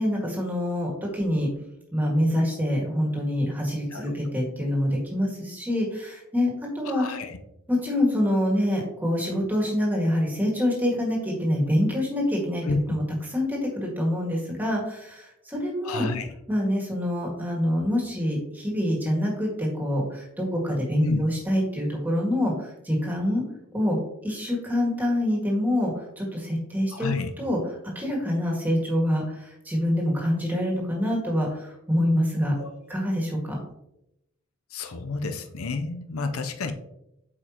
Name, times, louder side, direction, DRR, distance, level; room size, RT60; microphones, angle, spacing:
voice 1, 0.0-1.5 1.9-7.1 7.7-12.6 12.9-13.0 13.3-16.1 16.5-23.4 23.7-24.0 24.2-27.1 27.4-27.6 28.0-32.5 32.9-33.6, left 1 dB, 10° right, -2 dB, 1.8 m, -26 dB
voice 2, 3.9-4.3 6.8-7.4 12.6-13.0 15.8-16.3 21.0-21.2 26.9-27.3 32.6-32.7 34.7-36.7, left 3 dB, 85° left, 8 dB, 0.7 m, -30 dB
8.2 x 5.1 x 2.9 m, 0.84 s
head